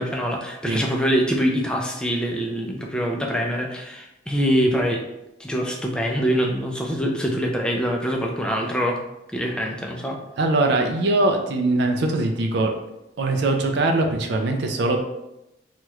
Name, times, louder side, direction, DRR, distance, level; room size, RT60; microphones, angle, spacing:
voice 1, 0.0-5.0 5.4-9.0 9.3-10.2, equal, 5° left, 0 dB, 0.4 m, -24 dB
voice 2, 10.4-12.8 13.2-15.0, right 2 dB, 60° right, 3 dB, 0.4 m, -21 dB
3.0 x 2.4 x 3.0 m, 0.89 s
head